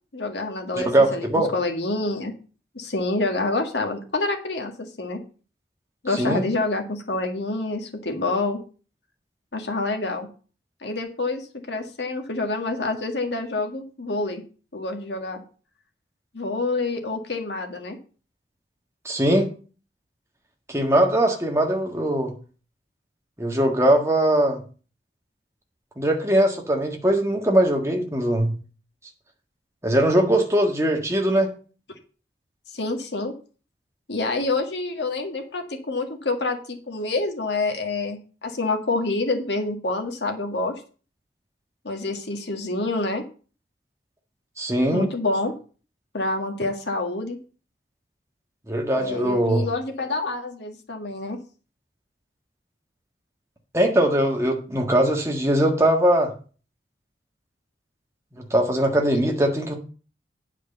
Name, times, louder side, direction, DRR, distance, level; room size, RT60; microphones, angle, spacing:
voice 1, 0.1-1.3 1.5-2.3 2.8-5.2 6.0-8.6 9.5-10.3 10.8-14.4 14.7-15.4 16.3-18.0 32.7-33.3 34.1-40.7 41.8-43.2 44.9-45.5 46.1-47.4 49.0-51.4, left 2 dB, 80° left, 4 dB, 1.8 m, -27 dB
voice 2, 0.8-1.5 6.1-6.4 19.0-19.5 20.7-22.3 23.4-24.6 26.0-28.5 29.8-31.5 44.6-45.1 48.7-49.7 53.7-56.3 58.3-59.7, right 1 dB, 15° right, 1 dB, 1.6 m, -21 dB
9.5 x 5.0 x 6.6 m, 0.38 s
head